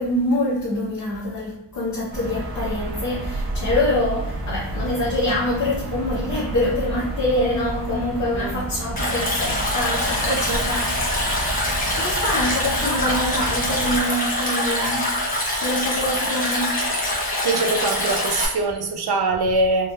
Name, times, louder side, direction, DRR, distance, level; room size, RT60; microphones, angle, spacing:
voice 1, 0.0-10.9 11.9-17.1, left 1 dB, 45° left, -7 dB, 1.1 m, -25 dB
sound 1, 2.1-14.0, right 2 dB, 80° right, 1.0 m, -31 dB
Stream, 9.0-18.5, left 1 dB, 20° left, 1.1 m, -24 dB
voice 2, 17.4-19.9, right 2 dB, 65° right, 4 dB, 0.7 m, -23 dB
4.3 x 2.6 x 2.5 m, 0.87 s
wide cardioid pair, 120°, 41 cm